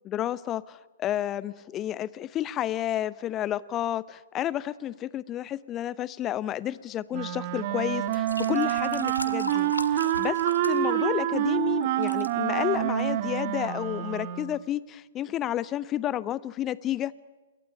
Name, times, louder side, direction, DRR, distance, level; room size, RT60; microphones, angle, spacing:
voice 1, 0.0-10.4 10.7-17.2, left 12 dB, 25° left, 19 dB, 0.8 m, -31 dB
Wind instrument woodwind instrument, 7.1-14.6, right 13 dB, 40° right, 1.5 m, -27 dB
sound 1, 7.4-7.6 8.1-11.6 11.8-12.3 13.0-13.1, left 2 dB, 80° left, 1.9 m, -38 dB
27.5 x 22.0 x 10.0 m, 1.2 s
figure-of-eight pair, 115°, 0 cm